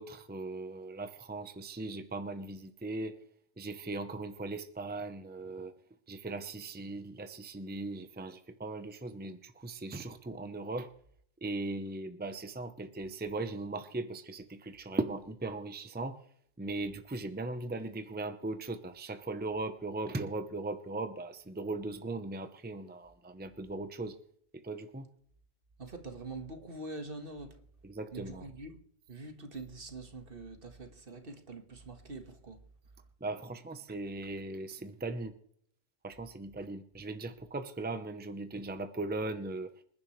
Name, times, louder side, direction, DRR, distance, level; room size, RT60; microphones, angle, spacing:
voice 1, 0.0-3.2 3.6-5.7 6.1-10.9 11.4-16.2 16.6-24.2 24.6-25.1 27.8-28.5 33.2-35.3 36.0-39.7, right 2 dB, 10° right, 0.7 m, -38 dB
voice 2, 25.8-27.6 28.1-28.8 29.1-32.6, right 2 dB, 60° right, 1.8 m, -44 dB
26.5 x 10.5 x 3.2 m
omnidirectional pair, 1.1 m